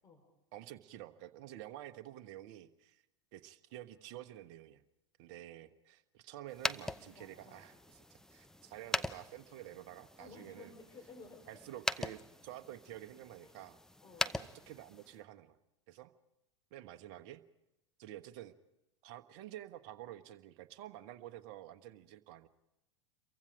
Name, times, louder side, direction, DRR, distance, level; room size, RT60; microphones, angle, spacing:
voice 1, 0.5-3.0 3.3-4.8 5.2-10.7 11.5-13.8 14.2-15.6 15.9-16.1 16.7-17.4 18.0-18.5 19.0-22.5, right 13 dB, 50° right, 10 dB, 1.2 m, -50 dB
sound 1, 6.5-15.2, left 1 dB, 5° left, 0.7 m, -42 dB
voice 2, 6.9-7.7 10.2-11.4 13.4-13.5 14.0-14.3, left 3 dB, 25° left, 3 dB, 4.9 m, -55 dB
28.5 x 23.5 x 5.2 m, 0.95 s
figure-of-eight pair, 85°, 15 cm